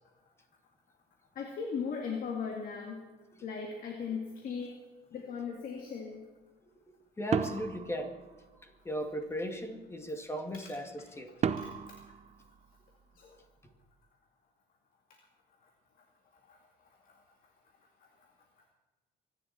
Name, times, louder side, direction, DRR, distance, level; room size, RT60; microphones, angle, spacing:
voice 1, 1.4-3.0 3.4-4.7 5.1-6.2 10.5-10.7 13.2-13.4 16.5-16.6, left 6 dB, 55° left, 2 dB, 2.2 m, -38 dB
voice 2, 7.2-8.1 8.6-10.9 11.2-11.3, equal, 15° left, 5 dB, 2.3 m, -36 dB
sound 1, 7.3-8.8 11.4-13.2, right 7 dB, 40° right, 0.8 m, -35 dB
24.0 x 11.0 x 4.4 m, 1.2 s
cardioid pair, 110°, 17 cm